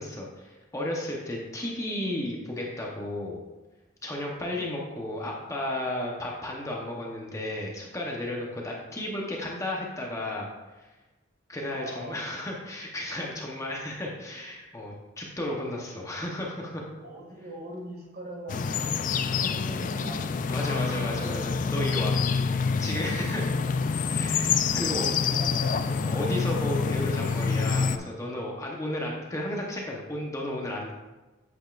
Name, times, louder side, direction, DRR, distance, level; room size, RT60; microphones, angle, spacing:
voice 1, 0.0-3.4 4.0-10.5 10.8-10.9 11.5-16.9 20.5-23.5 24.1-25.1 25.9-30.9, left 1 dB, 15° left, -2 dB, 0.9 m, -33 dB
voice 2, 11.7-12.4 17.0-21.8 24.5-25.7, equal, 50° right, -1 dB, 1.9 m, -42 dB
sound 1, 18.5-28.0, left 5 dB, 40° left, 0.3 m, -27 dB
8.9 x 8.0 x 2.5 m, 1.1 s
head